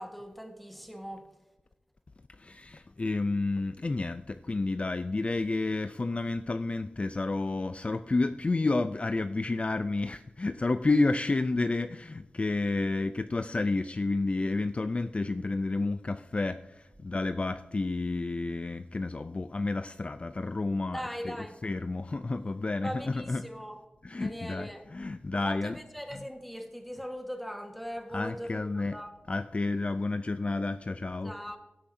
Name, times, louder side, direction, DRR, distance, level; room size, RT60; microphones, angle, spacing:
voice 1, 0.0-1.3 20.9-21.6 22.8-23.8 24.1-24.8 25.3-29.2 31.2-31.6, equal, ahead, 1.4 m, -40 dB
voice 2, 2.3-21.4 21.6-23.4 24.0-25.8 28.1-29.0 29.3-31.3, left 3 dB, 35° left, 0.4 m, -30 dB
16.5 x 8.4 x 2.7 m
wide cardioid pair, 90°, 3 cm